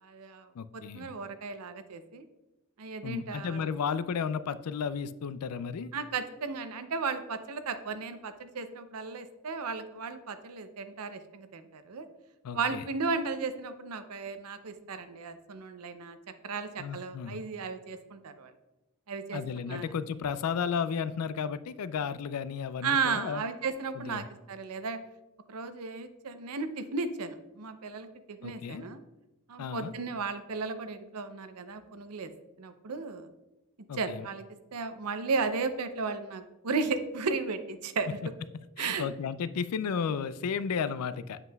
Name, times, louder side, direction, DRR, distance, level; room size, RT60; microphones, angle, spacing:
voice 1, 0.0-2.3 2.8-3.7 5.9-12.1 12.5-16.2 16.4-18.5 19.1-19.4 19.7-19.9 22.8-25.0 25.5-29.0 29.5-32.3 32.6-33.3 33.9-34.4 34.7-38.2 38.8-39.1, right 4 dB, 90° right, 10 dB, 0.6 m, -35 dB
voice 2, 0.5-1.1 3.0-5.9 12.4-12.8 16.8-17.4 19.3-23.4 24.0-24.2 28.4-28.8 29.6-29.9 33.9-34.2 38.8-41.4, left 6 dB, 90° left, 14 dB, 0.4 m, -33 dB
7.9 x 7.5 x 2.3 m, 1.0 s
head